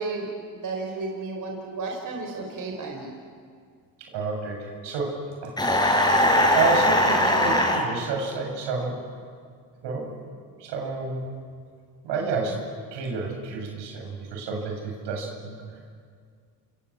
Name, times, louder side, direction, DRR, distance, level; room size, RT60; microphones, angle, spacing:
voice 1, 0.0-3.1, right 3 dB, 50° right, 1 dB, 4.8 m, -33 dB
voice 2, 4.0-5.5 6.1-6.3 6.5-9.0 9.8-10.3 10.6-11.2 12.0-15.6, right 4 dB, 80° right, 1 dB, 7.8 m, -30 dB
sound 1, 5.6-7.8, left 1 dB, 10° left, 6.0 m, -20 dB
28.0 x 23.5 x 8.8 m, 2.1 s
supercardioid pair, 75°, 42 cm